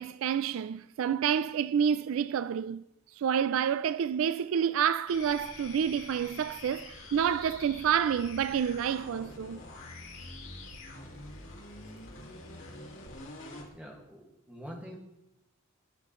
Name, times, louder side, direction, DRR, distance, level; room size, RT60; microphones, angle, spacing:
voice 1, 0.0-2.8 3.2-9.6, right 8 dB, 70° right, 0.3 m, -29 dB
sound 1, 5.1-13.7, left 2 dB, 70° left, 2.9 m, -46 dB
voice 2, 13.7-15.0, equal, 5° right, 1.9 m, -45 dB
18.0 x 6.6 x 3.1 m
head